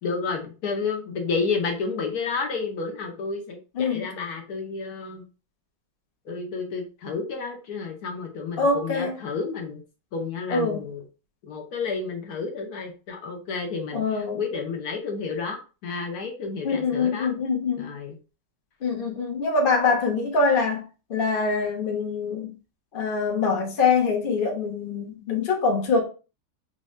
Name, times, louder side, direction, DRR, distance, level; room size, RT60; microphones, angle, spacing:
voice 1, 0.0-5.2 6.3-9.8 10.1-11.0 11.4-17.3 17.8-18.2, left 4 dB, 65° left, 1.1 m, -31 dB
voice 2, 3.7-4.1 8.6-9.2 10.5-10.9 13.9-14.5 16.6-17.9 18.8-22.5 22.9-26.0, left 4 dB, 45° left, 0.7 m, -24 dB
4.3 x 2.6 x 3.1 m
omnidirectional pair, 2.0 m